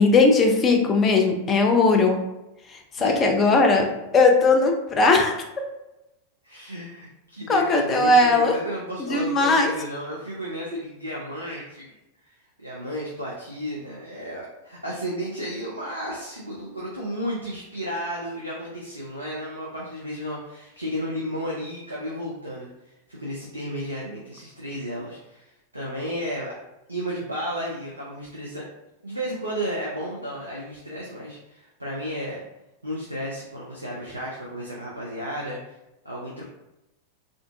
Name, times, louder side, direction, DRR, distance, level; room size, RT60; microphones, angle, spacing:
voice 1, 0.0-2.2 3.0-3.9 4.1-5.3 7.5-8.5 9.0-9.7, left 3 dB, 25° left, 3 dB, 0.5 m, -18 dB
voice 2, 3.0-3.6 6.4-12.0 12.2-22.7 23.1-26.5 26.9-28.7 29.0-32.4 32.8-35.7 36.0-36.4, equal, 85° right, -5 dB, 0.5 m, -33 dB
3.5 x 2.5 x 2.4 m, 0.93 s
figure-of-eight pair, 90°, 0 cm